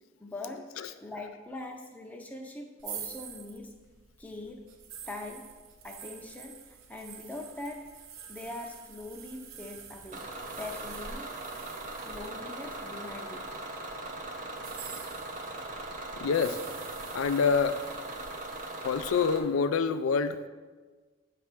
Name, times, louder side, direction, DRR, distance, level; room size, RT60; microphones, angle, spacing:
voice 1, 0.2-0.7 1.0-3.8 4.2-4.7 5.1-5.5 5.8-8.0 8.3-10.3 10.6-11.3 12.0-13.6 18.7-18.8, left 2 dB, 5° left, 1 dB, 0.6 m, -42 dB
sound 1, 2.8-13.8 14.5-19.3, right 7 dB, 80° right, 0.7 m, -48 dB
Bus / Engine, 10.1-19.4, right 2 dB, 35° right, 0.7 m, -40 dB
voice 2, 16.2-16.6 17.1-17.8 18.8-20.5, left 5 dB, 80° left, 12 dB, 0.4 m, -26 dB
8.3 x 3.3 x 5.8 m, 1.4 s
head